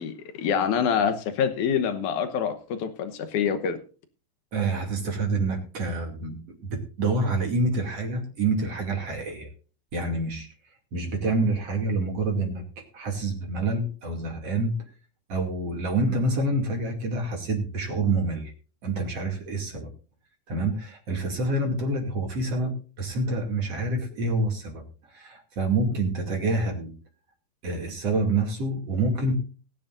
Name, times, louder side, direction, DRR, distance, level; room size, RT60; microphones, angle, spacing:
voice 1, 0.0-3.8, left 7 dB, 85° left, 1.7 m, -26 dB
voice 2, 4.5-9.5 9.9-10.5 10.9-12.7 12.9-14.8 15.3-18.5 18.8-19.9 20.5-24.8 25.1-26.9 27.6-29.3, right 2 dB, 40° right, 3.0 m, -27 dB
20.5 x 10.5 x 2.6 m
omnidirectional pair, 5.2 m